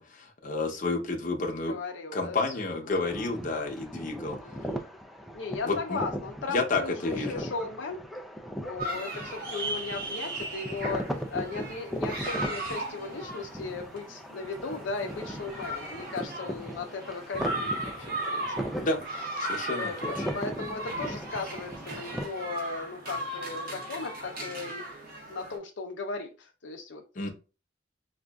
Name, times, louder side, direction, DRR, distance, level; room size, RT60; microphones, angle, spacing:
voice 1, 0.0-1.7 2.1-4.4 5.6-6.0 6.5-7.4 18.8-19.0 19.4-20.2 27.2-27.3, left 3 dB, 45° left, 0.8 m, -30 dB
voice 2, 1.7-3.3 4.4-4.9 5.3-8.0 8.6-18.9 19.8-24.9 25.3-27.3, left 4 dB, 80° left, 0.6 m, -37 dB
sound 1, 3.0-22.3, equal, ahead, 0.3 m, -38 dB
sound 2, 8.8-25.6, right 1 dB, 50° right, 1.2 m, -37 dB
5.0 x 2.5 x 2.2 m
head